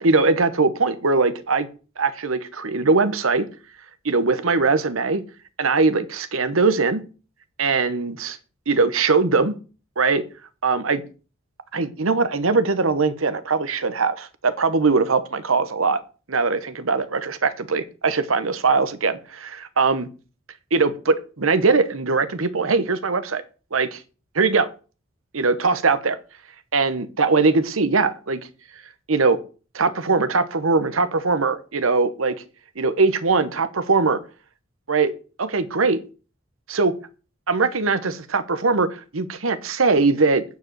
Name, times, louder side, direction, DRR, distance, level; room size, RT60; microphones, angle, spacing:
voice 1, 0.0-1.7 2.0-3.5 4.0-5.2 5.6-7.0 7.6-8.4 8.7-9.6 10.0-10.2 10.6-11.0 11.7-16.0 16.3-20.1 20.7-23.4 23.7-24.0 24.3-24.7 25.3-26.2 26.7-28.4 29.1-29.4 29.7-32.3 32.8-34.2 34.9-35.1 35.4-36.0 36.7-36.9 37.5-40.4, right 4 dB, 90° right, 13 dB, 1.1 m, -21 dB
9.4 x 4.9 x 7.9 m, 0.35 s
head